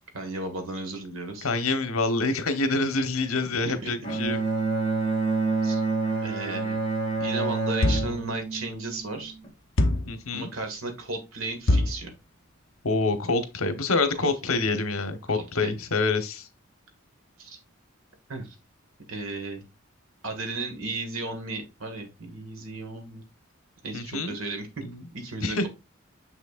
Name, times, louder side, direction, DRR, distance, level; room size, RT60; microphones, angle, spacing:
voice 1, 0.1-1.5 3.5-3.9 5.6-5.8 6.2-6.8 7.2-9.3 10.3-12.1 14.2-14.3 15.3-15.7 17.4-17.6 18.3-18.5 19.1-19.6 20.2-23.2 23.8-24.7 25.1-25.7, right 2 dB, 75° right, 1.8 m, -34 dB
voice 2, 1.4-4.4 10.1-10.5 12.8-16.5 23.9-24.3 24.8-25.0 25.4-25.7, left 3 dB, 85° left, 1.1 m, -26 dB
Bowed string instrument, 4.0-9.5, right 3 dB, 25° left, 2.2 m, -28 dB
sound 1, 7.8-8.3 9.8-10.2 11.7-12.1, left 1 dB, 65° left, 0.8 m, -23 dB
6.7 x 6.1 x 2.5 m
head